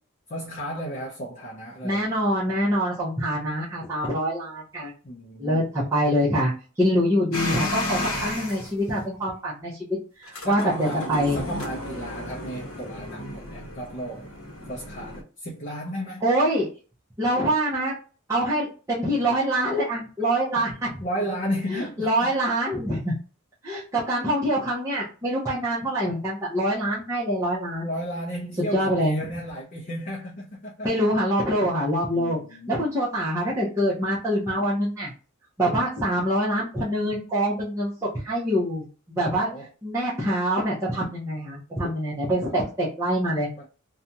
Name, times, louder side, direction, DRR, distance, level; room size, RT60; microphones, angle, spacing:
voice 1, 0.3-2.1 5.0-5.6 10.4-14.3 14.7-16.2 21.0-22.4 27.8-30.9 32.1-32.9 39.3-39.7 42.4-42.7 43.6-43.7, equal, 40° left, 0.6 m, -34 dB
voice 2, 1.8-4.9 5.4-6.5 6.8-9.8 10.2-11.4 16.2-16.7 17.2-17.9 18.3-20.9 21.7-23.1 23.6-27.9 28.6-29.2 30.8-32.4 32.7-35.1 35.6-39.5 39.8-43.5, equal, 15° right, 0.7 m, -25 dB
sound 1, 7.3-8.7 10.2-15.2, left 1 dB, 80° left, 0.9 m, -33 dB
2.6 x 2.3 x 2.7 m
head